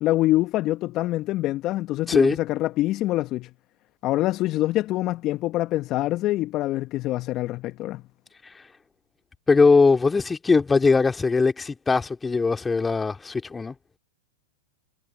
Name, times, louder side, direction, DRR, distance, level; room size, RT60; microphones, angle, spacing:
voice 1, 0.0-3.5 4.0-8.0, left 16 dB, 40° left, 1.2 m, -25 dB
voice 2, 2.1-2.4 9.5-13.7, left 4 dB, 15° left, 2.5 m, -20 dB
hypercardioid pair, 105°, 0 cm